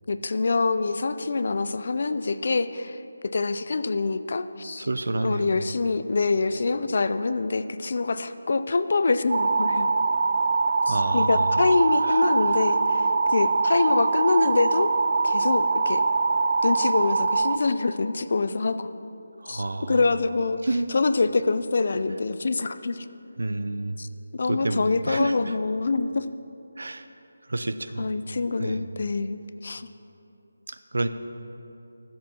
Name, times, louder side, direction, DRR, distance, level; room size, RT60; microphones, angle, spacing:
voice 1, 0.1-4.9 5.2-9.9 10.9-14.9 15.2-16.0 16.6-18.9 19.5-20.6 20.9-23.1 24.0-26.3 28.0-29.9, left 3 dB, 40° left, 11 dB, 0.4 m, -25 dB
voice 2, 4.8-5.7 10.9-11.6 12.0-12.2 19.4-20.0 20.6-20.9 23.4-24.0 24.5-25.5 26.8-27.1 27.5-28.1 28.6-28.9 30.7-31.1, right 2 dB, 70° right, 10 dB, 0.7 m, -29 dB
sound 1, 9.3-17.6, right 4 dB, 35° right, 0.4 m, -23 dB
19.5 x 7.5 x 4.4 m, 2.8 s
figure-of-eight pair, 180°, 0 cm